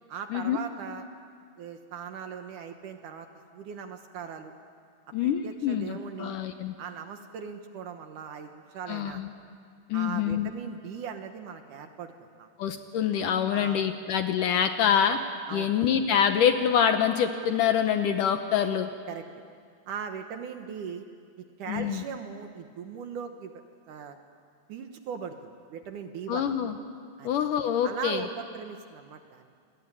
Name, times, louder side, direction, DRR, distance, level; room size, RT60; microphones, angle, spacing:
voice 1, 0.1-1.0 1.6-3.3 3.5-4.5 5.2-6.4 6.8-9.3 9.9-12.5 13.5-13.9 15.5-15.7 19.1-19.3 19.9-21.1 21.4-24.2 24.7-26.6 27.2-27.4 27.8-29.5, right 7 dB, 65° right, 6 dB, 2.3 m, -39 dB
voice 2, 5.1-6.7 8.9-9.3 9.9-10.5 12.6-15.2 15.5-18.9 21.7-22.0 26.3-26.8 27.2-28.2, left 8 dB, 70° left, 7 dB, 2.1 m, -25 dB
28.0 x 21.0 x 9.9 m, 2.2 s
omnidirectional pair, 4.5 m